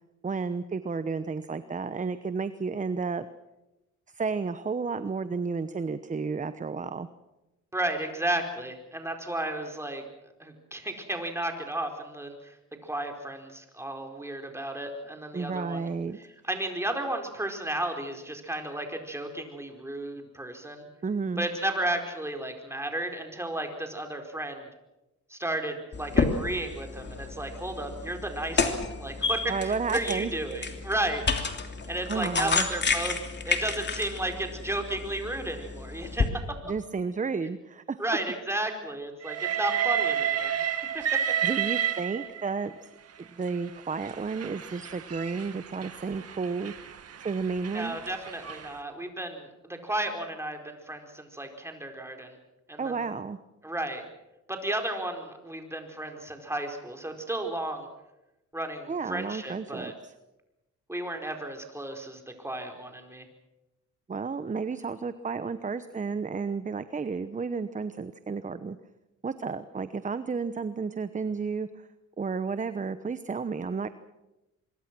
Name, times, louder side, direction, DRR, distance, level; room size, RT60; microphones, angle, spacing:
voice 1, 0.2-3.3 4.1-7.1 15.3-16.2 21.0-21.5 29.5-30.3 32.1-32.7 36.6-38.0 41.4-42.9 43.2-46.7 47.2-48.0 52.8-53.4 58.9-60.1 64.1-68.8 69.2-71.9 72.2-73.9, right 5 dB, 25° right, 12 dB, 1.0 m, -32 dB
voice 2, 7.7-10.0 10.4-12.5 12.8-15.9 16.4-20.8 21.4-24.7 25.3-31.4 31.9-33.2 33.5-36.3 38.0-40.6 40.9-41.2 47.7-52.4 52.7-53.0 53.6-54.0 54.5-57.9 58.5-59.9 60.9-63.3, right 1 dB, 10° right, 4 dB, 4.7 m, -33 dB
sound 1, 25.9-36.3, left 4 dB, 35° left, 3.0 m, -31 dB
Train, 39.2-42.6 43.5-48.7, right 9 dB, 55° right, 2.1 m, -31 dB
25.0 x 23.0 x 6.2 m, 0.98 s
cardioid pair, 90°, 30 cm